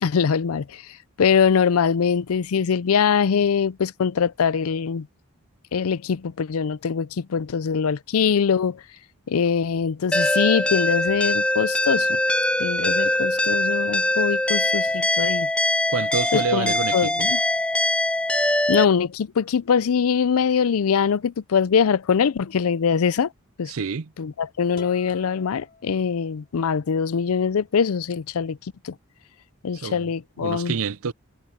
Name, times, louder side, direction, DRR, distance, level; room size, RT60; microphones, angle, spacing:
voice 1, 0.0-0.8 1.2-5.1 5.7-8.8 9.3-12.2 12.6-15.5 16.3-17.4 18.7-23.3 23.6-23.7 24.2-28.6 28.8-28.9 29.6-30.7, left 6 dB, 75° left, 0.5 m, -22 dB
sound 1, 10.1-18.8, left 1 dB, 5° left, 0.5 m, -22 dB
voice 2, 15.9-17.3 23.7-24.1 29.8-30.1 30.4-31.1, right 5 dB, 70° right, 0.5 m, -28 dB
sound 2, 24.7-26.7, left 4 dB, 40° left, 3.2 m, -49 dB
head